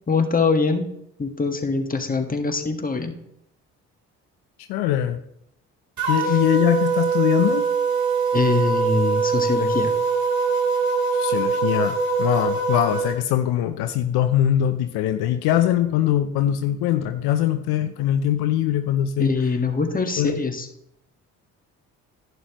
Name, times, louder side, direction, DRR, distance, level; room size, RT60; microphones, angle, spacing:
voice 1, 0.1-0.9 1.2-3.1 8.3-9.9 19.2-20.7, left 4 dB, 20° left, 5 dB, 1.5 m, -23 dB
voice 2, 4.7-5.2 6.1-7.7 11.1-19.3 20.2-20.4, left 11 dB, 75° left, 7 dB, 0.7 m, -22 dB
sound 1, 6.0-13.2, right 4 dB, 50° right, 3.0 m, -23 dB
11.0 x 9.3 x 3.0 m, 0.76 s
hypercardioid pair, 50°, 39 cm